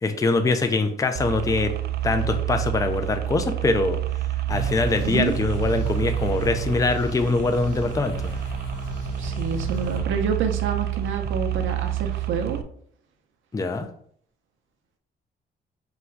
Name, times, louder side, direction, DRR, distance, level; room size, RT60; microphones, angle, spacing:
voice 1, 0.0-1.7 2.0-4.0 4.5-8.3 13.5-13.9, left 3 dB, 15° left, 8 dB, 0.4 m, -23 dB
sound 1, 1.2-12.6, right 13 dB, 55° right, 0.4 m, -29 dB
sound 2, 4.5-10.1, right 1 dB, 75° left, 1.8 m, -33 dB
voice 2, 5.0-5.3 9.2-12.6, right 5 dB, 80° right, 5 dB, 0.7 m, -28 dB
3.9 x 2.3 x 4.5 m, 0.62 s
cardioid pair, 90°, 20 cm